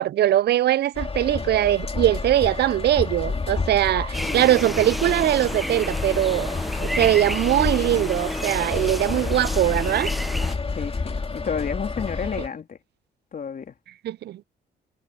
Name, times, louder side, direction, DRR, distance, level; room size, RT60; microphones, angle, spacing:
voice 1, 0.0-6.5 6.8-10.1 14.0-14.4, right 13 dB, 55° right, 0.4 m, -21 dB
sound 1, 0.9-12.5, left 4 dB, 30° left, 2.4 m, -29 dB
sound 2, 4.1-10.6, equal, ahead, 0.7 m, -31 dB
voice 2, 10.7-12.8 13.3-13.7, left 6 dB, 45° left, 3.5 m, -31 dB
cardioid pair, 90°, 20 cm